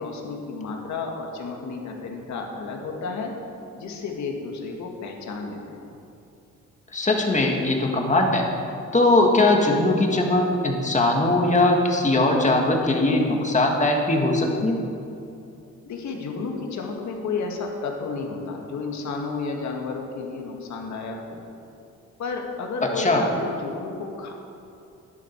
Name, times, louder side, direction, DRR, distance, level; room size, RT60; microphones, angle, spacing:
voice 1, 0.0-3.3 3.7-6.0 15.9-21.4 22.2-24.3, left 4 dB, 70° left, 2 dB, 1.8 m, -32 dB
voice 2, 6.9-8.4 8.9-14.8 23.0-23.3, left 2 dB, 25° left, 1 dB, 1.8 m, -20 dB
11.5 x 10.5 x 4.6 m, 2.6 s
cardioid pair, 90°, 30 cm